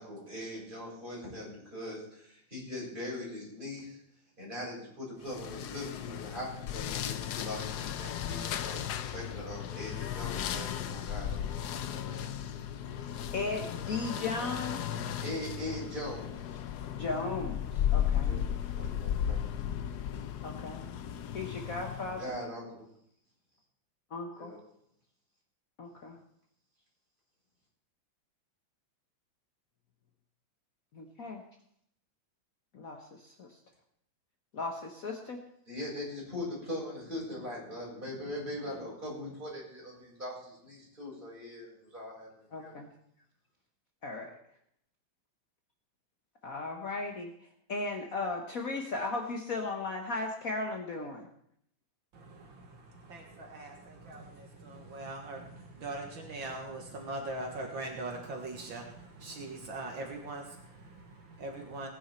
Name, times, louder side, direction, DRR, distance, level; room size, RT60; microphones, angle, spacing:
voice 1, 0.0-4.0 4.4-8.8 9.1-11.4 11.9-12.2 15.2-16.6 18.2-18.4 18.7-19.4 22.1-22.9 24.4-24.6 35.7-42.7, left 1 dB, 25° right, -5 dB, 6.6 m, -41 dB
sound 1, 5.2-22.4, left 10 dB, 65° left, 1.1 m, -35 dB
voice 2, 13.0-14.8 16.9-18.4 20.4-20.8 21.3-22.4 24.1-24.6 25.8-26.2 30.9-31.4 32.7-33.6 34.5-35.4 42.5-42.9 44.0-44.4 46.4-51.3, left 3 dB, 50° left, 3 dB, 1.4 m, -36 dB
voice 3, 52.1-61.9, right 2 dB, 70° right, 2 dB, 2.4 m, -41 dB
19.0 x 10.0 x 4.3 m, 0.71 s
omnidirectional pair, 2.2 m